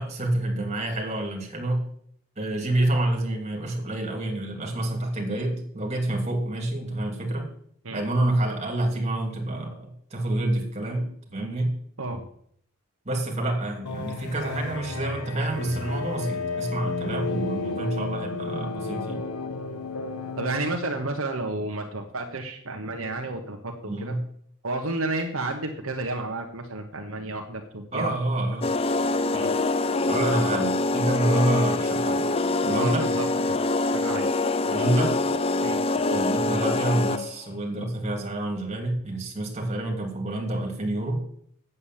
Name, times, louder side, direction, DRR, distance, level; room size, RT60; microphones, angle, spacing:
voice 1, 0.0-1.8 2.4-7.5 7.9-11.7 13.0-19.2 23.8-24.2 27.9-28.7 30.1-32.2 32.6-33.1 34.6-35.2 36.1-41.2, right 1 dB, 30° right, 2 dB, 2.7 m, -28 dB
sound 1, 13.9-20.8, left 3 dB, 90° left, 1.2 m, -32 dB
voice 2, 20.4-24.2 24.6-28.1 29.3-29.5 32.7-33.6 33.9-34.4 35.6-36.0, right 2 dB, 70° right, 3 dB, 1.2 m, -31 dB
sound 2, 28.6-37.4, left 2 dB, 25° left, 0.4 m, -25 dB
8.5 x 8.3 x 7.4 m, 0.64 s
head